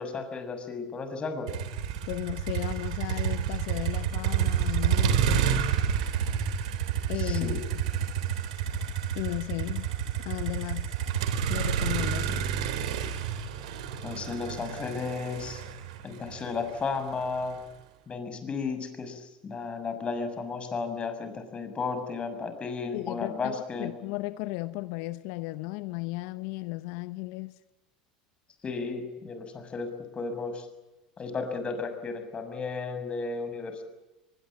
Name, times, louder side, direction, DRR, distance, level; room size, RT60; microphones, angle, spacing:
voice 1, 0.0-1.5 7.2-7.6 14.0-15.6 16.0-17.6 18.1-23.9 28.6-30.7 31.2-33.8, left 4 dB, 30° left, 6.6 m, -34 dB
Motor vehicle (road), 1.5-17.6, right 8 dB, 75° right, 3.5 m, -29 dB
voice 2, 2.1-5.7 7.1-7.6 9.1-9.9 10.2-10.9 11.5-12.5 22.9-27.6, left 20 dB, 65° left, 0.9 m, -35 dB
24.0 x 22.5 x 8.8 m
hypercardioid pair, 85°, 4 cm